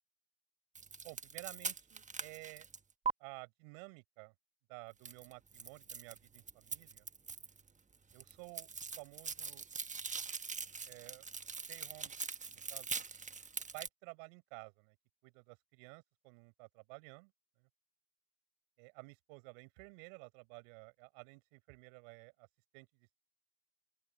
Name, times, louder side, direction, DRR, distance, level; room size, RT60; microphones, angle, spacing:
sound 1, 0.7-3.1 5.0-7.7 7.9-13.9, right 5 dB, 20° right, 1.3 m, -42 dB
voice 1, 1.0-2.7 3.2-4.3 4.7-7.1 8.1-8.7 9.0-9.7 10.9-11.3 11.7-12.1 12.7-13.1 13.7-15.0 15.2-17.3 17.6-17.7 18.8-22.5 22.7-23.1, right 35 dB, 70° right, 6.2 m, -53 dB
open air
hypercardioid pair, 85°, 40 cm